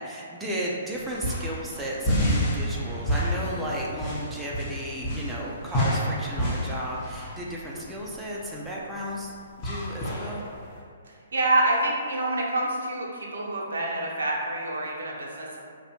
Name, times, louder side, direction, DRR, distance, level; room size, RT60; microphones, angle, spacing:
voice 1, 0.0-9.3 9.6-10.5, equal, 5° right, -5 dB, 0.3 m, -34 dB
sound 1, 0.9-10.8, equal, 30° left, 0.7 m, -30 dB
sound 2, 3.4-10.0, left 1 dB, 75° left, 0.5 m, -49 dB
voice 2, 11.0-15.6, right 2 dB, 70° right, -3 dB, 0.5 m, -27 dB
2.6 x 2.1 x 2.7 m, 2.2 s
figure-of-eight pair, 130°, 0 cm